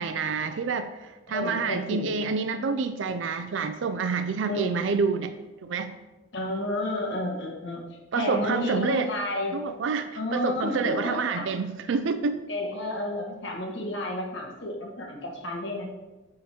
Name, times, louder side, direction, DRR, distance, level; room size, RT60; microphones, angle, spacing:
voice 1, 0.0-5.4 5.6-5.9 8.1-9.1 9.5-12.4, right 4 dB, 75° right, 9 dB, 0.4 m, -28 dB
voice 2, 1.3-2.1 4.4-4.8 6.3-7.8 8.1-9.6 10.1-11.5 12.5-15.9, left 1 dB, 65° left, 0 dB, 1.4 m, -31 dB
9.3 x 3.8 x 4.3 m, 1.1 s
head